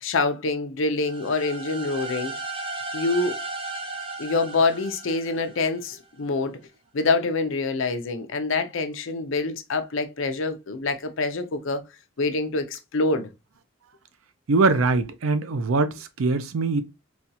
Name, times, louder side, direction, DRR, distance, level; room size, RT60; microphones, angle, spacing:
voice 1, 0.0-2.3 2.9-3.3 4.2-6.6 6.9-11.8 12.2-13.3, left 3 dB, 70° left, 0.6 m, -26 dB
sound 1, 1.0-5.8, right 3 dB, 25° right, 0.6 m, -35 dB
voice 2, 14.5-16.8, right 3 dB, 80° right, 0.5 m, -22 dB
4.1 x 2.3 x 2.7 m
head